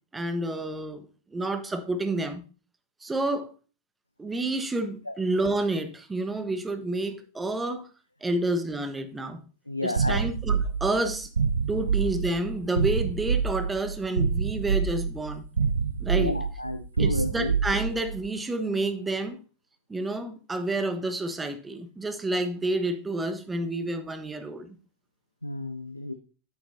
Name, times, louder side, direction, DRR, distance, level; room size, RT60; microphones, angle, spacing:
voice 1, 0.1-1.1 1.3-2.4 3.0-3.5 4.2-7.9 8.2-9.4 9.8-11.3 11.7-15.4 16.0-16.4 17.0-19.4 19.9-24.8, right 2 dB, 10° right, 1.0 m, -29 dB
voice 2, 9.7-10.3 11.7-11.8 16.1-17.5 25.4-26.1, left 2 dB, 85° left, 0.6 m, -32 dB
sound 1, 10.0-18.2, right 6 dB, 70° right, 0.4 m, -27 dB
8.5 x 7.8 x 2.6 m
figure-of-eight pair, 90°, 0 cm